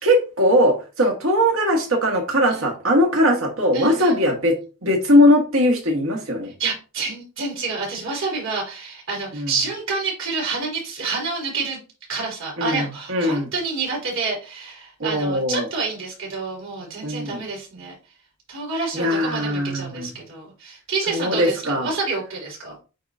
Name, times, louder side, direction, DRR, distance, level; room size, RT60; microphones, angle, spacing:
voice 1, 0.0-4.5 4.8-6.5 9.3-9.5 12.6-13.5 15.0-15.7 17.0-17.4 18.9-20.1 21.1-21.9, equal, 85° right, 1 dB, 1.9 m, -20 dB
voice 2, 3.7-4.2 6.6-11.8 12.1-17.9 18.5-22.8, right 4 dB, 70° right, -3 dB, 3.8 m, -28 dB
8.5 x 4.0 x 2.8 m, 0.33 s
head